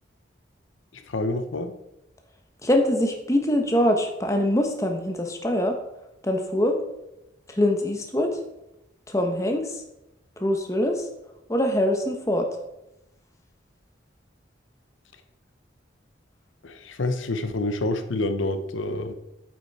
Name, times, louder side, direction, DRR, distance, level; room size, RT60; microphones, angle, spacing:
voice 1, 0.9-1.7 16.6-19.1, left 2 dB, 85° left, 9 dB, 0.8 m, -28 dB
voice 2, 2.6-5.8 6.2-6.8 7.5-8.4 9.1-9.6 10.4-11.0 11.5-12.5, left 1 dB, 15° left, 4 dB, 1.1 m, -23 dB
8.8 x 8.3 x 4.1 m, 0.89 s
head